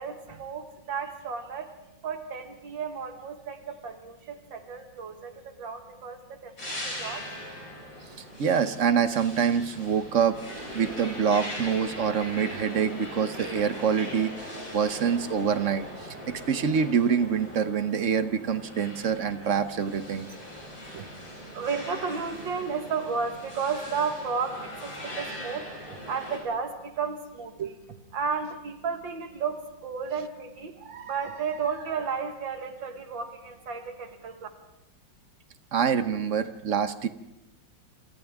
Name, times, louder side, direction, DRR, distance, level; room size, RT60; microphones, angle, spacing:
voice 1, 0.0-1.7 2.0-7.3 21.0-27.8 28.1-34.5, right 5 dB, 85° right, 6 dB, 2.2 m, -33 dB
sound 1, 6.6-26.4, left 1 dB, 45° left, 5.7 m, -40 dB
voice 2, 8.4-10.4 10.7-20.3 20.9-21.0 27.6-27.7 35.7-37.1, right 7 dB, 50° right, 11 dB, 1.1 m, -26 dB
28.0 x 27.0 x 3.6 m, 0.93 s
omnidirectional pair, 2.0 m